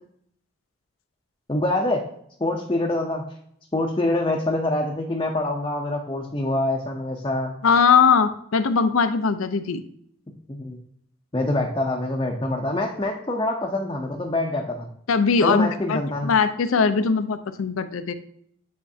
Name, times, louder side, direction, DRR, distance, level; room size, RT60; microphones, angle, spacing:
voice 1, 1.5-2.0 2.4-3.2 3.7-7.5 10.3-10.8 11.3-14.9 15.4-16.3, left 1 dB, 20° left, -1 dB, 0.6 m, -25 dB
voice 2, 7.6-9.8 15.1-18.1, left 5 dB, 90° left, 11 dB, 0.5 m, -20 dB
8.4 x 4.3 x 2.7 m, 0.68 s
head